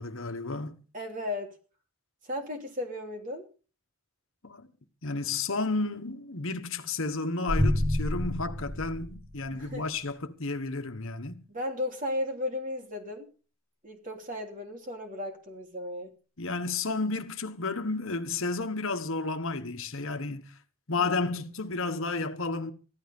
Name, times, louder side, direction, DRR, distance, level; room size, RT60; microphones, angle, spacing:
voice 1, 0.0-0.8 4.4-4.7 5.0-11.4 16.4-20.5 20.9-22.7, left 3 dB, 60° left, 1.4 m, -32 dB
voice 2, 0.9-1.5 2.2-3.4 9.5-9.8 11.5-13.3 13.8-16.1 21.0-21.4, left 1 dB, 35° right, 3.2 m, -35 dB
sound 1, 7.5-9.7, left 1 dB, 20° right, 2.0 m, -29 dB
15.5 x 12.5 x 5.4 m
head